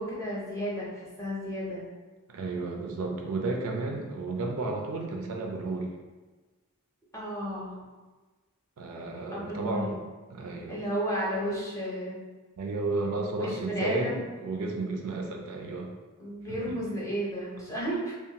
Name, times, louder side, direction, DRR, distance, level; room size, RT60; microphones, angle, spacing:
voice 1, 0.0-1.8 7.1-7.8 9.3-9.9 10.7-12.2 13.4-14.2 16.2-18.1, equal, 15° left, -6 dB, 0.7 m, -33 dB
voice 2, 2.3-5.9 8.8-10.0 10.3-10.8 12.6-15.9 16.5-16.8, right 3 dB, 70° right, 1 dB, 0.4 m, -32 dB
2.5 x 2.3 x 2.8 m, 1.3 s
head